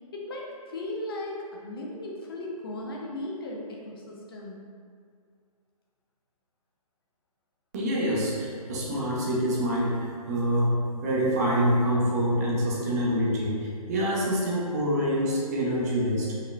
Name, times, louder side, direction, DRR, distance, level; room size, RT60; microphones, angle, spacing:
voice 1, 0.1-4.6, left 1 dB, 35° left, -2 dB, 0.7 m, -36 dB
voice 2, 7.7-16.3, equal, 25° right, -5 dB, 0.7 m, -26 dB
5.4 x 3.8 x 2.3 m, 2.1 s
figure-of-eight pair, 135°, 20 cm